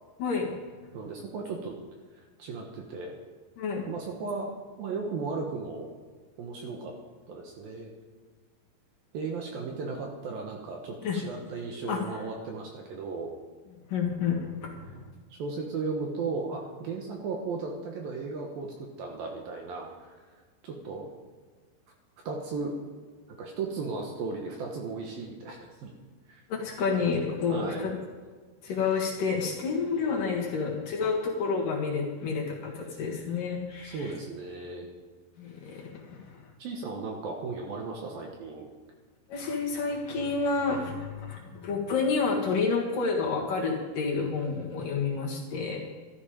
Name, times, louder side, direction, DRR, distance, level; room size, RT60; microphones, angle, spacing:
voice 1, 0.2-0.5 3.6-3.9 11.0-11.2 11.9-12.2 13.9-15.1 26.5-28.0 28.6-34.1 35.4-36.5 39.3-45.8, left 5 dB, 60° left, -2 dB, 2.9 m, -29 dB
voice 2, 0.9-1.8 2.4-3.2 3.9-4.5 4.8-5.9 6.4-7.0 7.3-7.9 9.1-13.3 15.4-20.2 20.6-21.1 22.3-22.7 23.3-25.9 26.3-26.4 27.5-27.9 33.8-34.9 36.6-38.7, right 4 dB, 65° right, 1 dB, 2.6 m, -35 dB
13.5 x 13.0 x 5.1 m, 1.5 s
omnidirectional pair, 5.2 m